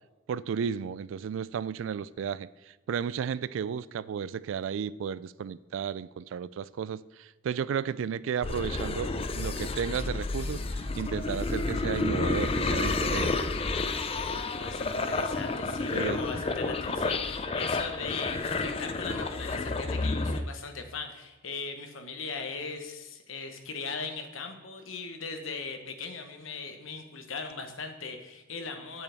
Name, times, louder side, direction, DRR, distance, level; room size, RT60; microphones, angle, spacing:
voice 1, 0.3-2.5 2.9-13.3 15.9-16.2, right 7 dB, 70° right, 0.3 m, -33 dB
sound 1, 8.4-20.4, left 3 dB, 30° left, 0.5 m, -30 dB
voice 2, 14.3-29.0, left 4 dB, 75° left, 1.2 m, -39 dB
9.1 x 8.3 x 3.5 m
head